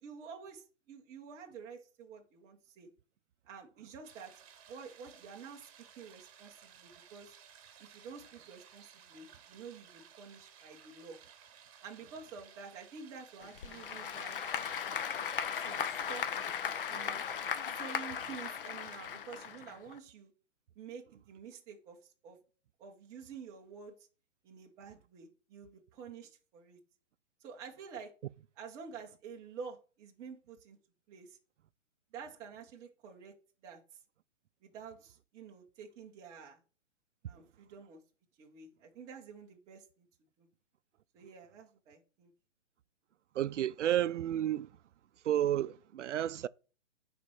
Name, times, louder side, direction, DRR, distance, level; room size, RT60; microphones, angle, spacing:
voice 1, 0.0-2.9 3.5-4.4 4.7-5.7 6.0-7.4 7.8-11.2 11.8-15.0 15.5-16.3 16.9-17.2 17.8-20.3 20.8-22.4 22.8-24.1 24.4-26.8 27.4-28.1 28.6-30.8 31.1-31.4 32.1-33.3 33.6-33.8 34.6-36.6 37.3-38.0 38.4-40.1 40.4-40.5 41.1-42.3, right 6 dB, 10° right, 0.6 m, -49 dB
sound 1, 4.0-15.4, right 8 dB, 30° right, 1.4 m, -58 dB
Applause / Crowd, 13.4-20.0, left 7 dB, 50° left, 0.8 m, -37 dB
voice 2, 43.3-44.7 45.2-46.5, right 11 dB, 75° right, 0.5 m, -31 dB
10.0 x 4.3 x 4.2 m
hypercardioid pair, 160°, 36 cm